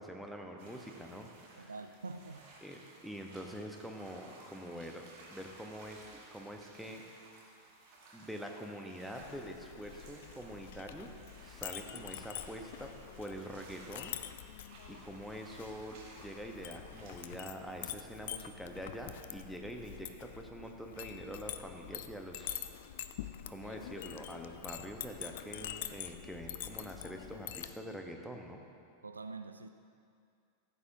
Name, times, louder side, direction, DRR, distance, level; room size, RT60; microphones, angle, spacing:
voice 1, 0.0-1.7 2.6-5.0 5.3-6.0 6.3-7.0 8.1-11.1 11.4-14.2 14.9-22.6 23.5-28.6, equal, ahead, 2 dB, 0.9 m, -45 dB
sound 1, 0.6-17.2, right 2 dB, 45° right, 1.8 m, -57 dB
voice 2, 1.6-2.4 29.0-29.7, right 3 dB, 75° right, 9 dB, 0.3 m, -45 dB
Chink clink, 9.2-27.7, left 11 dB, 55° left, 0.4 m, -46 dB
14.0 x 8.1 x 2.8 m, 2.4 s
figure-of-eight pair, 90°, 0 cm